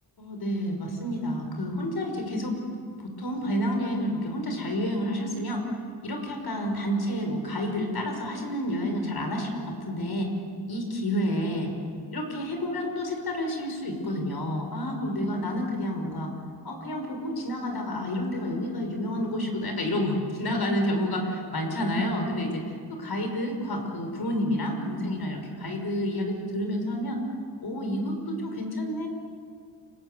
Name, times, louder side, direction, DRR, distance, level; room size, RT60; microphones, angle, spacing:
voice 1, 0.2-2.6 3.0-5.7 6.0-10.3 10.7-11.7 12.1-16.3 16.6-27.2 27.6-29.1, equal, 65° left, 4 dB, 5.8 m, -29 dB
29.5 x 21.5 x 8.2 m, 2.1 s
cardioid pair, 90°, 42 cm